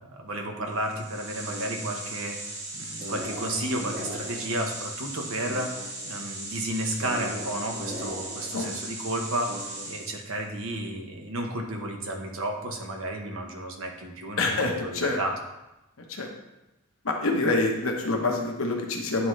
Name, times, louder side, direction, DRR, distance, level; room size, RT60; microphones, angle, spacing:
voice 1, 0.0-2.4 2.7-5.7 6.1-15.3, right 1 dB, 70° right, 3 dB, 0.9 m, -32 dB
sound 1, 0.8-10.4, right 1 dB, 50° right, 1.6 m, -37 dB
voice 2, 14.4-15.2 16.1-16.3 17.0-19.3, left 2 dB, 65° left, 2 dB, 1.0 m, -26 dB
9.6 x 3.7 x 3.1 m, 0.96 s
head